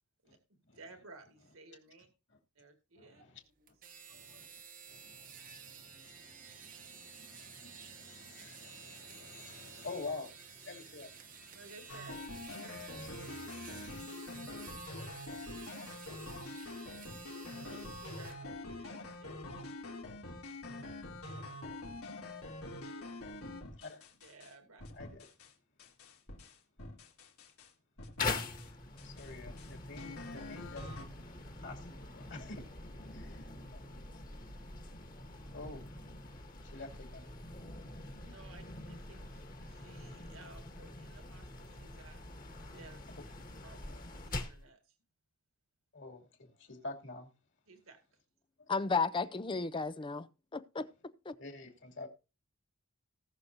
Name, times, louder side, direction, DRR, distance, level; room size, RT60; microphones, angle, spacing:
voice 1, 0.2-2.1 2.6-3.2 3.6-3.7 11.5-13.6 17.6-19.4 24.2-24.9 38.2-42.2 42.6-43.2 43.6-45.0 47.7-48.0, right 3 dB, 70° right, 1.9 m, -57 dB
voice 2, 3.0-3.4 4.1-4.5 4.9-12.0 12.5-14.0 21.9-22.1 23.7-24.1 24.9-25.3 29.0-31.0 31.6-32.7 33.1-34.4 35.5-35.9 36.6-37.3 43.1-43.2 43.9-44.0 45.9-47.3 48.6-48.7 51.4-52.1, left 3 dB, 55° left, 2.7 m, -49 dB
sound 1, 3.7-18.4, right 7 dB, 40° right, 1.0 m, -52 dB
sound 2, 11.9-24.5 24.8-25.5 25.8-27.7 28.0-28.7 29.0-31.0, left 2 dB, 80° left, 3.2 m, -45 dB
sound 3, 28.2-44.7, left 3 dB, 40° left, 1.8 m, -44 dB
voice 3, 48.7-50.3 50.5-50.9 51.3-51.4, left 4 dB, 20° left, 0.5 m, -33 dB
19.0 x 6.5 x 2.7 m
head